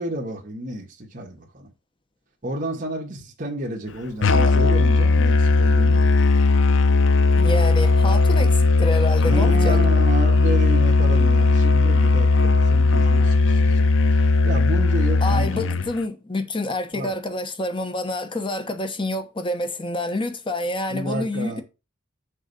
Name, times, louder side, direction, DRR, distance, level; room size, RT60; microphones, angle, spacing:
voice 1, 0.0-1.7 2.4-6.0 9.2-15.8 16.9-17.1 20.9-21.6, right 1 dB, 40° right, 1.7 m, -31 dB
Musical instrument, 4.2-15.9, left 3 dB, 65° left, 0.5 m, -17 dB
voice 2, 7.4-9.8 15.2-21.6, left 1 dB, 25° left, 0.9 m, -27 dB
6.5 x 4.0 x 5.4 m
head